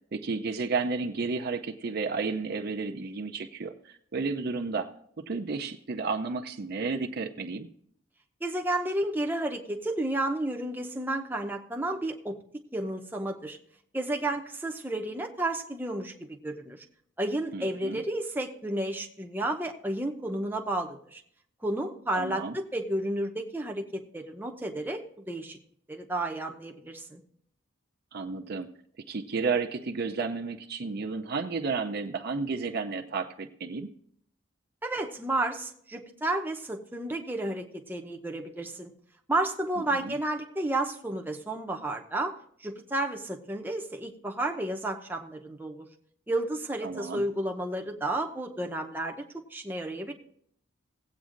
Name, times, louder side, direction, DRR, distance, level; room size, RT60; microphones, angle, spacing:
voice 1, 0.1-4.9 5.2-7.7 17.5-18.0 22.1-22.6 28.1-28.7 29.1-33.9 39.8-40.2 46.8-47.3, right 4 dB, 50° right, 5 dB, 0.6 m, -32 dB
voice 2, 8.4-12.4 12.7-13.6 13.9-16.1 16.4-16.8 17.2-21.2 21.6-25.0 25.3-25.6 25.9-27.2 34.8-38.9 39.3-42.3 42.6-45.9 46.3-49.2 49.5-50.1, right 1 dB, 10° right, 2 dB, 0.7 m, -32 dB
18.0 x 8.2 x 2.5 m, 0.66 s
head